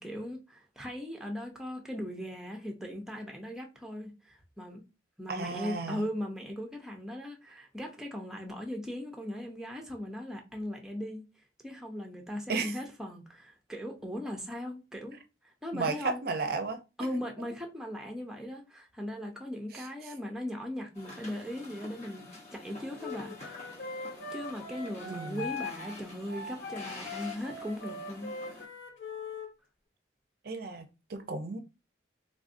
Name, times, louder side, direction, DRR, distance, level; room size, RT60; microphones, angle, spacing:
voice 1, 0.0-4.8 5.2-16.2 17.0-23.7 24.3-28.7, left 1 dB, 5° right, 0.5 m, -39 dB
voice 2, 5.3-6.1 12.5-12.7 15.7-16.8 19.7-19.9 25.1-25.5 30.4-31.6, right 4 dB, 55° right, 0.5 m, -34 dB
sound 1, 20.9-28.7, left 2 dB, 35° left, 0.8 m, -48 dB
Wind instrument woodwind instrument, 23.0-29.5, left 3 dB, 85° left, 0.8 m, -41 dB
3.5 x 2.5 x 2.5 m
head